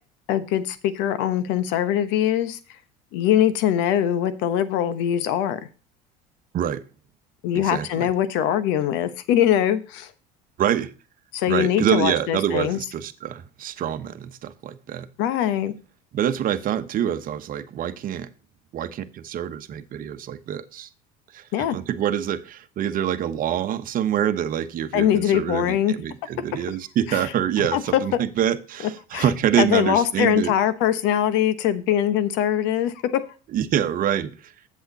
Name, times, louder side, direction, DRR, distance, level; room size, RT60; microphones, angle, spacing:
voice 1, 0.3-2.6 3.1-5.6 7.4-10.1 11.3-12.8 15.2-15.7 21.5-21.8 24.9-25.9 27.1-27.3 27.7-28.0 29.1-29.3 29.6-33.2, left 10 dB, 65° left, 13 dB, 1.1 m, -22 dB
voice 2, 7.5-8.1 10.6-10.9 11.5-15.1 16.1-18.3 18.7-20.9 21.3-21.4 21.7-30.5 33.5-34.5, right 10 dB, 45° right, 10 dB, 1.1 m, -26 dB
8.0 x 7.4 x 4.0 m, 0.35 s
supercardioid pair, 95°, 20 cm